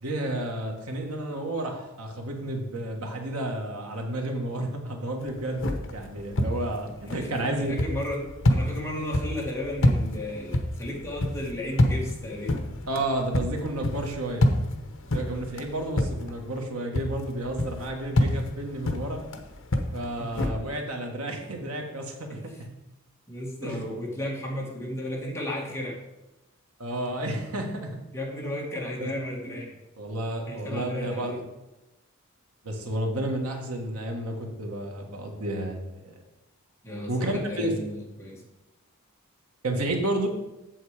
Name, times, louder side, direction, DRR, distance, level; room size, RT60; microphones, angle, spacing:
voice 1, 0.0-5.6 5.9-7.7 12.9-14.5 15.1-19.2 19.9-22.7 23.6-23.9 26.8-28.0 29.0-29.1 30.0-31.4 32.6-36.2 37.1-37.8 39.6-40.3, right 1 dB, 85° right, 3 dB, 1.6 m, -31 dB
sound 1, 5.2-16.6 16.9-20.5, left 1 dB, 60° left, 1.0 m, -28 dB
voice 2, 7.1-12.6 20.2-20.7 22.3-22.4 23.3-26.0 28.1-29.8 30.5-31.4 36.8-38.4, left 1 dB, 15° left, -2 dB, 2.0 m, -34 dB
7.9 x 7.4 x 4.9 m, 0.98 s
head